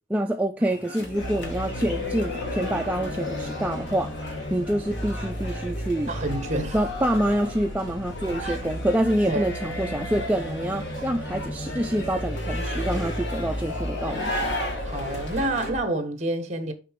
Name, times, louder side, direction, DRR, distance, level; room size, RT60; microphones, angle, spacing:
voice 1, 0.1-4.1 4.5-6.1 6.7-14.6, right 1 dB, 10° right, 0.3 m, -26 dB
sound 1, 0.6-15.7, equal, 65° left, 2.1 m, -36 dB
sound 2, 1.0-15.8, equal, 30° left, 0.9 m, -35 dB
sound 3, 1.1-15.5, left 3 dB, 80° left, 4.6 m, -38 dB
voice 2, 6.1-6.7 8.4-8.6 9.3-9.4 14.8-16.7, right 1 dB, 35° right, 1.4 m, -28 dB
6.8 x 5.8 x 3.6 m
head